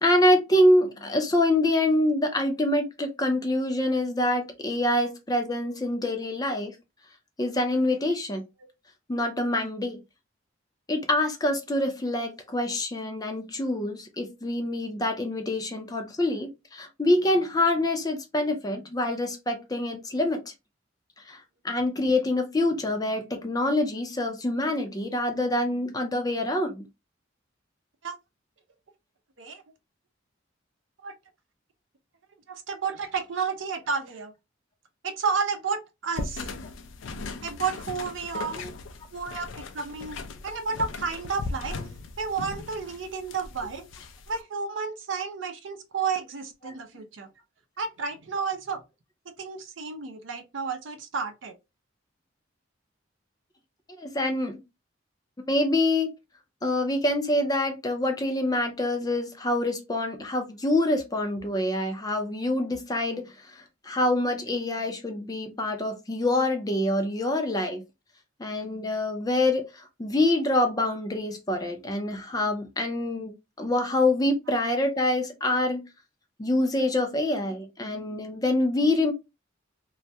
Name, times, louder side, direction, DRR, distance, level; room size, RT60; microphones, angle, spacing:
voice 1, 0.0-6.8 7.4-8.4 9.1-10.0 10.9-20.4 21.3-21.4 21.6-26.8 38.6-38.7 46.6-46.7 54.0-54.6 55.5-56.1 56.6-67.8 68.4-73.3 73.6-75.8 76.4-79.1, left 1 dB, 20° left, 0.5 m, -26 dB
voice 2, 32.5-34.3 35.0-36.4 37.4-38.6 39.1-41.8 42.2-43.8 44.3-47.3 47.8-48.8 49.4-51.5, right 5 dB, 70° right, 0.5 m, -31 dB
sound 1, 36.2-44.4, left 3 dB, 75° left, 0.4 m, -38 dB
2.3 x 2.1 x 2.6 m
head